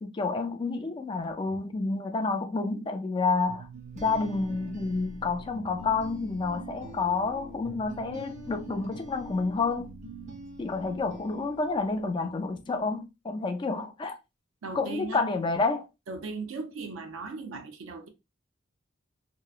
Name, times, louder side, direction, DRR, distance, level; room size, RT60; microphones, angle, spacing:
voice 1, 0.0-3.7 4.0-10.0 10.6-14.2 14.7-15.9, left 3 dB, 25° left, 0.3 m, -29 dB
sound 1, 3.5-12.2, right 2 dB, 35° right, 0.5 m, -44 dB
voice 2, 14.6-15.2 16.1-18.1, right 4 dB, 80° right, 0.5 m, -38 dB
2.8 x 2.0 x 2.3 m
head